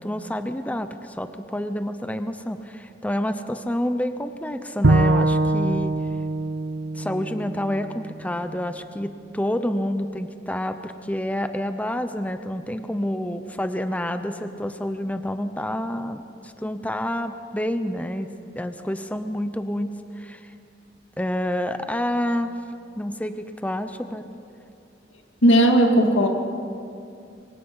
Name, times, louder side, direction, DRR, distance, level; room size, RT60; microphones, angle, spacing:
voice 1, 0.0-5.9 6.9-18.3 18.6-19.9 20.2-20.5 21.2-22.5 23.0-24.3, left 1 dB, 10° left, 9 dB, 0.7 m, -28 dB
Bowed string instrument, 4.8-8.1, right 2 dB, 65° right, 0.7 m, -22 dB
voice 2, 25.4-26.3, right 1 dB, 90° left, 2 dB, 2.6 m, -16 dB
26.0 x 24.0 x 5.6 m, 2.5 s
head